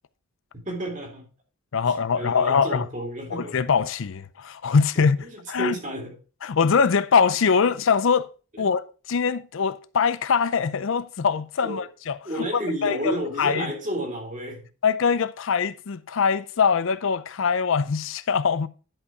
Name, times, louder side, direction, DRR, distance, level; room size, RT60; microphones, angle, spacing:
voice 1, 0.6-1.3 1.9-3.6 4.9-6.2 8.5-8.7 11.6-11.9 12.2-14.7, right 1 dB, 35° right, 3.7 m, -31 dB
voice 2, 1.7-2.8 3.3-5.2 5.5-5.8 6.4-8.3 8.6-12.5 12.8-13.0 13.4-13.7 14.8-18.7, left 6 dB, 65° left, 0.5 m, -23 dB
11.0 x 5.3 x 4.7 m
head